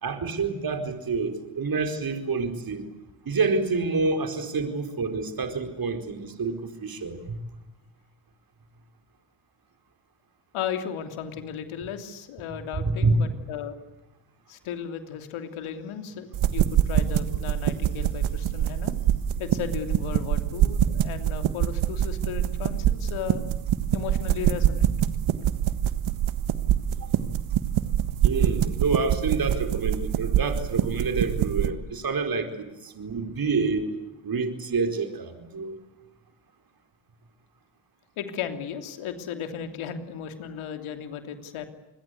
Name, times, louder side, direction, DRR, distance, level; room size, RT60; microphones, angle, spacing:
voice 1, 0.0-2.9 3.2-7.4 12.8-13.2 27.0-27.2 28.2-34.0 34.2-35.8, right 4 dB, 45° right, 7 dB, 4.7 m, -28 dB
voice 2, 10.5-13.7 14.5-18.9 19.4-23.4 23.9-24.9 38.2-41.7, left 8 dB, 80° left, 7 dB, 3.2 m, -35 dB
sound 1, 16.3-31.7, right 11 dB, 75° right, 1.6 m, -25 dB
28.0 x 21.5 x 8.3 m, 0.99 s
supercardioid pair, 65°, 48 cm